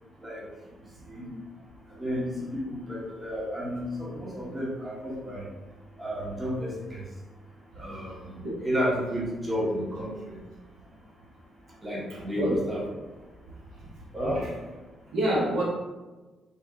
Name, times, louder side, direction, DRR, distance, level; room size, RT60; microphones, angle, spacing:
voice 1, 0.2-0.5 1.0-1.3 1.9-5.5 6.0-7.0 7.7-10.4 11.8-12.8 14.1-14.4, equal, 20° right, -5 dB, 1.5 m, -32 dB
voice 2, 12.1-12.6 13.8-13.9 15.1-15.6, right 1 dB, 75° right, -5 dB, 1.2 m, -28 dB
4.2 x 2.9 x 3.7 m, 1.2 s
cardioid pair, 90°, 0 cm